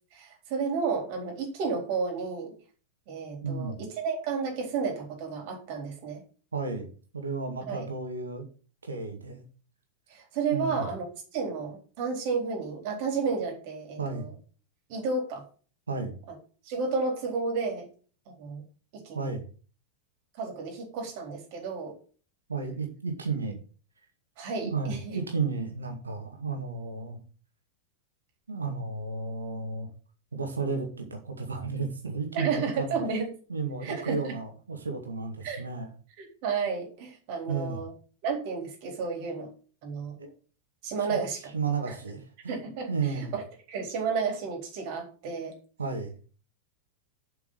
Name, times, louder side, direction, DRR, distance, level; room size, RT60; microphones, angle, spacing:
voice 1, 0.1-2.5 3.1-6.2 7.7-7.9 10.1-14.3 14.9-15.4 16.6-17.9 18.3-18.6 18.9-19.3 20.4-21.9 24.4-25.2 32.3-33.3 33.8-34.4 35.4-35.6 36.2-37.9 38.2-39.5 39.8-40.2 40.8-41.5 41.9-42.0 42.5-45.5, right 5 dB, 45° right, 2 dB, 3.9 m, -32 dB
voice 2, 3.4-3.8 6.5-8.5 8.8-9.4 10.5-10.9 14.0-14.3 15.9-16.2 19.1-19.4 22.5-23.6 24.6-27.2 28.5-29.9 30.3-33.2 33.5-35.9 37.5-37.8 40.2-40.3 41.5-42.5 42.9-43.4 45.8-46.1, right 4 dB, 75° right, 4 dB, 2.1 m, -33 dB
7.6 x 5.8 x 7.6 m, 0.40 s
figure-of-eight pair, 90°, 0 cm